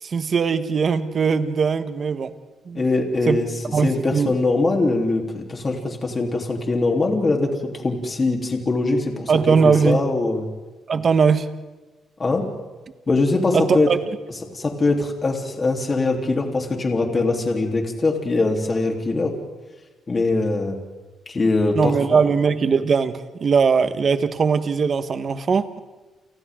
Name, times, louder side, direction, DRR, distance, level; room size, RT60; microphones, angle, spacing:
voice 1, 0.0-2.3 2.7-2.8 3.3-3.4 3.7-4.3 9.3-10.0 10.9-11.5 13.5-14.0 21.7-25.8, right 5 dB, 45° right, 10 dB, 1.4 m, -20 dB
voice 2, 2.7-10.5 12.2-12.5 13.1-13.9 14.5-19.3 20.1-20.8 21.3-22.2, left 3 dB, 30° left, 1 dB, 3.6 m, -22 dB
30.0 x 29.5 x 3.9 m, 1.2 s
cardioid pair, 115°, 0 cm